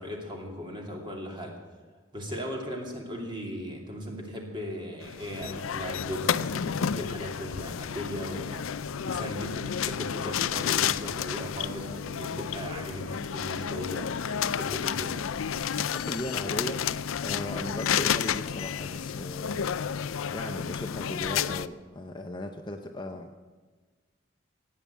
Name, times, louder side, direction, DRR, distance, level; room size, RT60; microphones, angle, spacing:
voice 1, 0.0-1.6 2.1-8.7 9.1-15.2, equal, 25° right, 0 dB, 2.7 m, -37 dB
sound 1, 5.0-21.7, left 8 dB, 85° left, 0.5 m, -31 dB
voice 2, 15.8-23.3, left 1 dB, 20° left, 5 dB, 0.7 m, -38 dB
16.5 x 8.9 x 8.4 m, 1.4 s
head